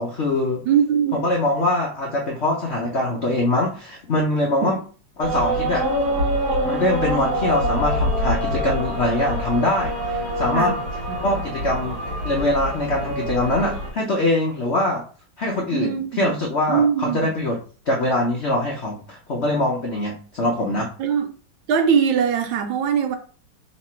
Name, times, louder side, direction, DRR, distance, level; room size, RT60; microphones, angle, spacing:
voice 1, 0.0-0.6 1.1-4.8 5.2-5.9 6.6-10.7 11.2-12.0 12.2-15.0 15.4-17.6 17.9-20.9, left 1 dB, 90° left, 0.5 m, -23 dB
voice 2, 0.6-1.2 4.6-4.7 10.5-10.8 11.1-11.2 15.7-16.3 16.7-17.2 21.0-21.3 21.7-23.2, right 7 dB, 80° right, 1.5 m, -21 dB
sound 1, 5.2-13.9, right 1 dB, 55° right, 1.4 m, -25 dB
3.2 x 3.0 x 4.3 m
omnidirectional pair, 2.2 m